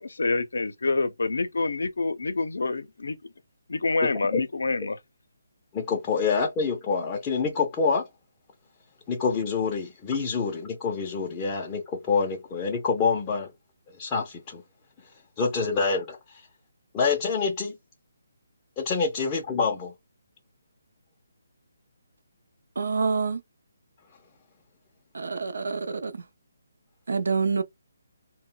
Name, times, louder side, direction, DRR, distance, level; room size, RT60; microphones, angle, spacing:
voice 1, 0.0-3.2 3.7-5.0, left 3 dB, 85° left, 0.5 m, -27 dB
voice 2, 5.7-8.1 9.1-13.5 13.9-14.6 15.4-16.4 16.9-17.8 18.8-19.9, left 5 dB, 15° left, 0.4 m, -26 dB
voice 3, 22.8-23.4 25.1-26.3 27.1-27.6, right 4 dB, 75° right, 0.5 m, -27 dB
2.2 x 2.1 x 3.7 m
hypercardioid pair, 175°, 0 cm